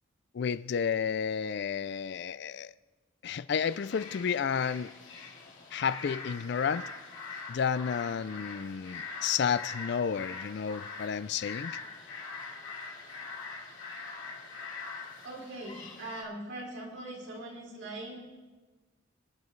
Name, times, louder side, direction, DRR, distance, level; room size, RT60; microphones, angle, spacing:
voice 1, 0.3-2.7 3.2-4.9 5.7-6.9 7.5-11.8, left 7 dB, 60° left, 0.4 m, -31 dB
sound 1, 3.6-16.2, left 4 dB, 85° left, 3.3 m, -43 dB
voice 2, 15.2-18.2, right 1 dB, 70° right, 3.3 m, -41 dB
26.0 x 9.4 x 3.2 m
head